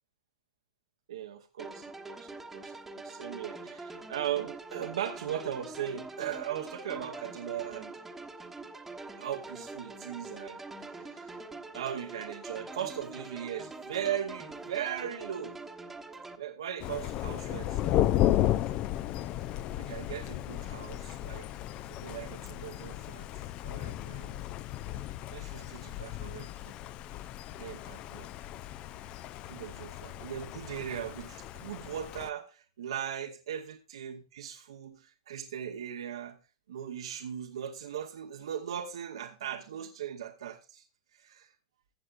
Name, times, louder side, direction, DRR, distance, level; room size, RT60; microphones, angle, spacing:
voice 1, 1.1-8.0 9.2-11.4 11.7-15.6 16.4-18.1 19.5-23.3 23.6-24.4 25.0-26.8 27.6-28.3 29.0-29.1 29.5-36.4 36.7-40.9 41.1-41.5, right 10 dB, 70° right, 5 dB, 0.9 m, -39 dB
sound 1, 1.6-16.4, right 3 dB, 10° right, 1.1 m, -44 dB
Thunder, 16.8-32.3, left 13 dB, 35° left, 0.5 m, -34 dB
15.0 x 7.8 x 2.5 m, 0.31 s
hypercardioid pair, 110°, 3 cm